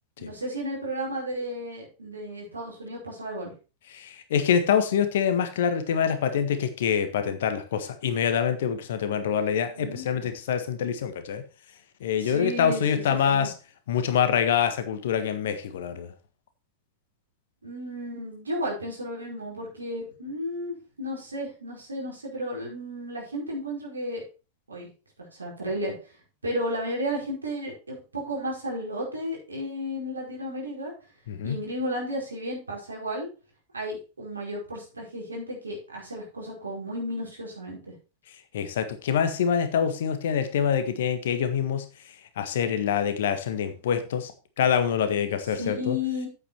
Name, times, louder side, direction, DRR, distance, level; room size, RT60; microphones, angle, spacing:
voice 1, 0.2-3.5 9.8-10.0 12.2-13.5 17.6-24.2 24.7-24.9 25.4-25.9 26.4-30.9 31.4-33.3 33.7-37.9 45.6-46.3, equal, 75° right, -2 dB, 4.8 m, -33 dB
voice 2, 3.9-11.4 12.0-13.5 13.9-16.1 31.3-31.6 38.5-41.8 42.4-44.3 44.6-46.0, left 8 dB, 60° left, 9 dB, 1.5 m, -25 dB
8.6 x 8.4 x 4.4 m, 0.32 s
figure-of-eight pair, 90°, 0 cm